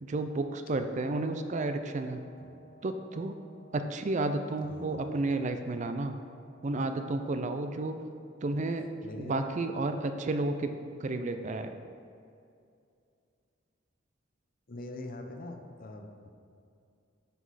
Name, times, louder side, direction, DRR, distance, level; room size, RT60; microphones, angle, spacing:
voice 1, 0.0-2.2 2.8-3.4 3.7-6.2 6.6-8.0 8.4-8.9 9.2-11.7, right 2 dB, 40° right, 8 dB, 0.4 m, -32 dB
Brass instrument, 0.9-7.0, right 2 dB, 70° right, 1.5 m, -56 dB
voice 2, 4.6-5.0 9.0-9.4 14.7-16.3, left 2 dB, 45° left, 4 dB, 0.8 m, -43 dB
9.4 x 6.0 x 4.1 m, 2.4 s
head